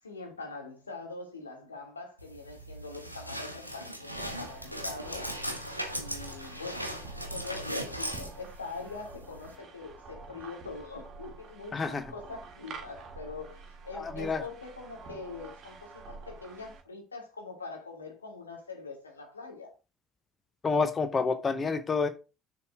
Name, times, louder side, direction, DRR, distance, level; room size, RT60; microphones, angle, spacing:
voice 1, 0.0-5.3 5.9-7.0 7.3-19.7, left 3 dB, 80° left, 1.6 m, -43 dB
sound 1, 2.2-9.6, equal, 90° right, 0.7 m, -38 dB
sound 2, 4.2-16.8, right 4 dB, 45° right, 1.4 m, -48 dB
voice 2, 11.7-12.0 13.9-14.4 20.6-22.1, left 4 dB, 25° left, 0.7 m, -28 dB
6.7 x 3.4 x 5.9 m
figure-of-eight pair, 60°, 0 cm